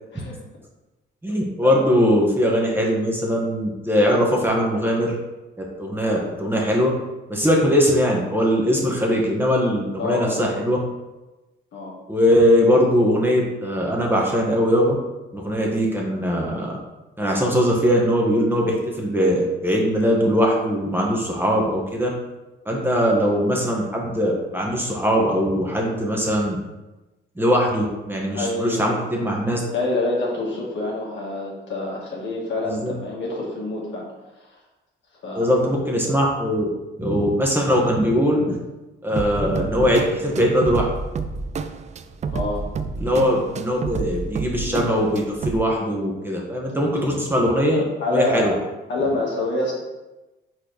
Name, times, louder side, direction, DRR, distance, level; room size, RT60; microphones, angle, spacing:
voice 1, 1.2-5.1 5.8-6.9 7.3-10.8 12.1-15.0 15.3-16.8 17.2-22.1 22.6-26.6 27.4-29.6 32.6-32.9 35.3-36.7 37.0-38.6 39.0-40.8 43.0-48.5, equal, 10° right, -2 dB, 1.3 m, -21 dB
voice 2, 10.0-10.5 11.7-12.0 28.3-29.1 29.5-34.1 35.2-35.5 42.3-42.7 48.0-48.6 48.9-49.7, left 2 dB, 65° left, -3 dB, 2.0 m, -26 dB
sound 1, 39.2-45.6, right 4 dB, 35° right, 0.4 m, -29 dB
4.4 x 4.3 x 5.0 m, 1.1 s
cardioid pair, 90°, 20 cm